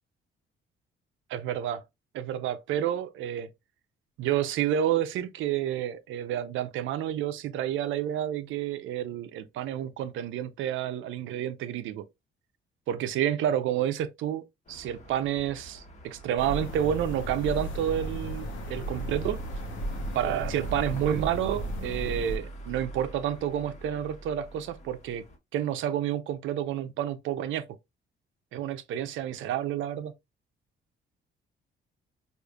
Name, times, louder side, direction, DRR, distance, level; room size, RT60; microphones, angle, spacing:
voice 1, 1.3-1.8 2.1-3.5 4.2-12.0 12.9-19.4 20.1-25.3 25.5-27.6 28.5-30.1, right 10 dB, 80° right, 0.5 m, -30 dB
sound 1, 14.7-25.4, right 2 dB, 35° left, 1.2 m, -45 dB
sound 2, 16.4-22.4, right 1 dB, 80° left, 0.9 m, -35 dB
4.8 x 2.5 x 2.3 m
cardioid pair, 90°, 20 cm